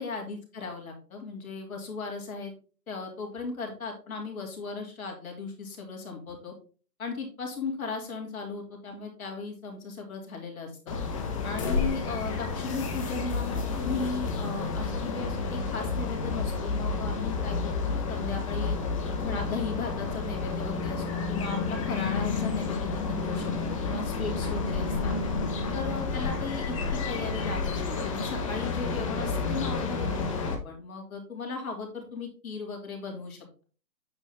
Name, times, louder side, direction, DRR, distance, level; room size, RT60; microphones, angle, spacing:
voice 1, 0.0-2.5 2.9-6.5 7.0-11.0 11.4-18.8 19.2-25.1 25.7-33.6, left 4 dB, 60° left, 1 dB, 3.2 m, -37 dB
sound 1, 10.9-30.6, left 4 dB, 20° left, 1.1 m, -30 dB
sound 2, 22.1-27.5, right 3 dB, 20° right, 2.2 m, -47 dB
9.0 x 5.0 x 3.5 m, 0.38 s
hypercardioid pair, 165°, 49 cm